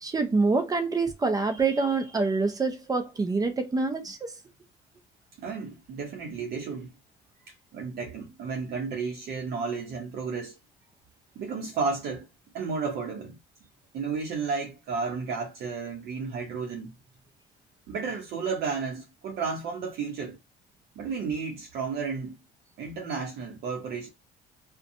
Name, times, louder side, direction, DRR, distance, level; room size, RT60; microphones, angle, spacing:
voice 1, 0.0-4.3, right 3 dB, 20° right, 0.5 m, -26 dB
voice 2, 5.4-6.9 7.7-10.6 11.4-12.3 12.5-13.4 13.9-16.9 17.9-20.4 21.0-22.4 22.8-24.1, right 5 dB, 70° right, 0.7 m, -32 dB
2.6 x 2.2 x 2.6 m
cardioid pair, 110°, 17 cm